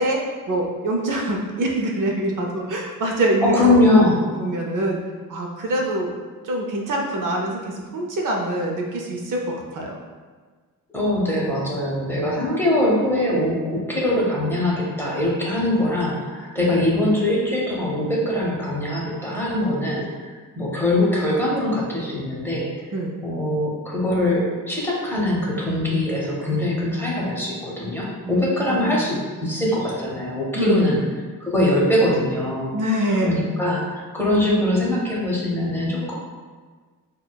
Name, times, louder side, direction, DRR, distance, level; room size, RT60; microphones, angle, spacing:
voice 1, 0.0-3.8 4.4-5.0 5.3-6.1 6.4-10.0 22.9-23.2 28.2-29.1 30.5-30.9 32.7-33.3, right 1 dB, 65° right, 0 dB, 0.6 m, -24 dB
voice 2, 3.4-4.2 10.9-22.7 23.2-31.0 31.4-32.7 33.2-36.1, left 1 dB, 5° left, -5 dB, 0.8 m, -22 dB
6.2 x 2.2 x 2.2 m, 1.5 s
wide cardioid pair, 125°, 35 cm